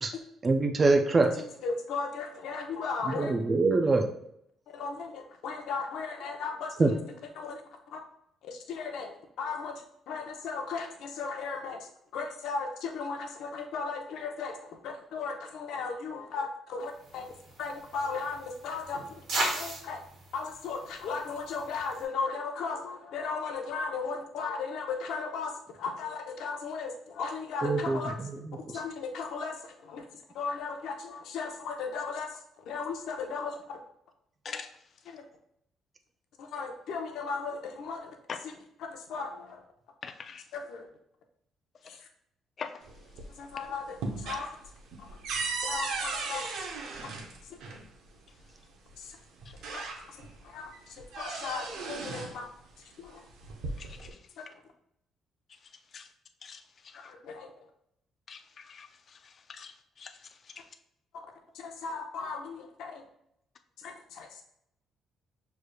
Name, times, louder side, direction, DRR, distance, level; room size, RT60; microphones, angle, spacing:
voice 1, 0.4-1.3 3.2-4.1 6.8-6.9 27.6-28.0, right 3 dB, 25° right, 5 dB, 0.4 m, -24 dB
voice 2, 1.6-3.4 4.7-7.0 7.4-7.6 7.9-8.0 8.4-19.2 19.5-20.0 20.3-28.1 28.7-30.1 30.3-33.8 35.1-35.2 36.4-38.1 38.4-38.5 38.8-39.6 40.5-40.9 41.8-42.1 43.4-44.5 45.0-45.1 45.6-46.4 47.5-47.6 49.0-49.2 50.4-52.5 53.0-53.2 54.4-54.5 57.0-57.5 61.1-61.2 61.5-63.0 63.8-64.4, left 4 dB, 75° left, 4 dB, 0.7 m, -36 dB
sound 1, 16.9-22.1, right 2 dB, 55° right, 1.4 m, -38 dB
voice 3, 40.0-40.4 42.6-42.7 53.8-54.2 55.9-56.1 56.4-57.1 58.3-60.6, left 6 dB, 40° left, 8 dB, 0.4 m, -44 dB
sound 2, 42.8-43.5 43.8-47.8 48.9-49.0 49.4-50.3 50.7-52.4 53.3-54.1, right 4 dB, 80° right, 0.7 m, -36 dB
6.3 x 3.3 x 2.2 m, 0.75 s
cardioid pair, 135°, 0 cm